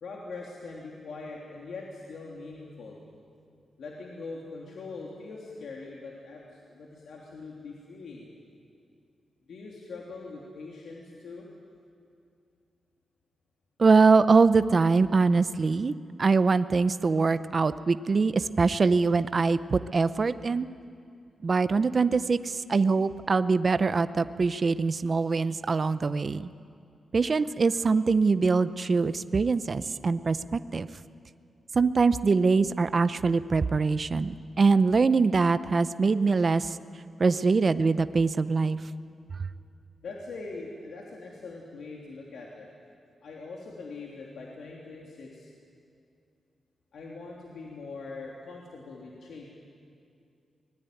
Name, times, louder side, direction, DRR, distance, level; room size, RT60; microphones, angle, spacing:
voice 1, 0.0-3.0 3.8-8.3 9.5-11.4 40.0-42.7 43.2-45.5 46.9-49.5, left 3 dB, 75° left, -2 dB, 3.1 m, -42 dB
voice 2, 13.8-15.9 16.2-20.7 21.4-26.5 27.1-30.9 31.7-36.8 37.2-38.8, right 4 dB, 35° right, 13 dB, 0.7 m, -23 dB
24.5 x 20.5 x 9.3 m, 2.5 s
wide cardioid pair, 140°, 0 cm